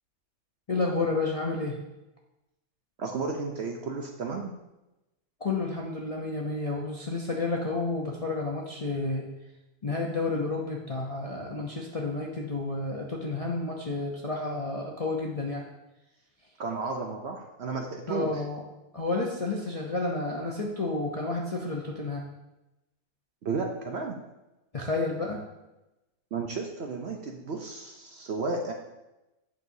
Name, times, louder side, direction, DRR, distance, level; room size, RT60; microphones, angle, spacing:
voice 1, 0.7-1.8 5.4-9.2 9.8-15.7 18.1-18.6 18.9-22.3 24.7-25.4, left 3 dB, 35° left, -2 dB, 0.6 m, -30 dB
voice 2, 3.0-4.5 16.6-18.4 23.4-24.2 26.3-28.7, right 4 dB, 55° right, 2 dB, 0.8 m, -33 dB
8.6 x 6.3 x 2.7 m, 0.96 s
omnidirectional pair, 1.6 m